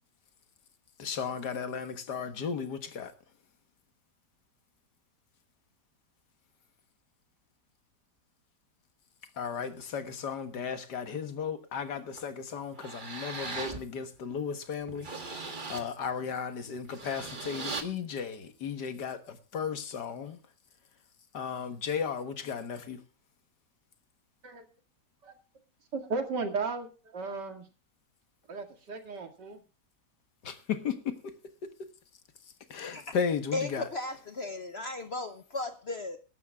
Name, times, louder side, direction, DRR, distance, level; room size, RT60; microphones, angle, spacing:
voice 1, 1.0-3.1 9.4-20.4 21.3-23.0 30.4-31.3 32.7-33.9, left 6 dB, 70° left, 1.9 m, -35 dB
sound 1, 12.2-12.3 12.8-13.8 14.3-14.4 14.8-15.9 16.8-17.8, right 3 dB, 30° right, 1.5 m, -39 dB
voice 2, 25.9-27.6 28.5-29.6, right 4 dB, 70° right, 2.8 m, -35 dB
voice 3, 33.5-36.2, left 2 dB, 45° left, 1.0 m, -35 dB
22.0 x 12.5 x 2.3 m
omnidirectional pair, 1.9 m